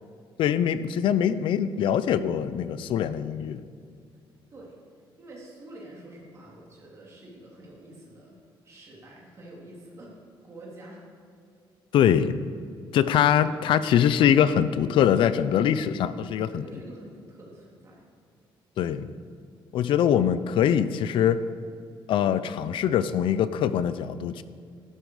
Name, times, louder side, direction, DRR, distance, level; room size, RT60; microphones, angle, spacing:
voice 1, 0.4-3.6 11.9-12.4 12.9-16.6 18.8-19.1 19.7-21.5 22.1-24.4, left 9 dB, 65° left, 14 dB, 0.6 m, -23 dB
voice 2, 5.2-8.4 8.6-10.1 10.4-11.0 16.5-18.0, right 1 dB, 30° right, -4 dB, 3.7 m, -47 dB
14.0 x 12.5 x 4.9 m, 2.4 s
cardioid pair, 175°, 9 cm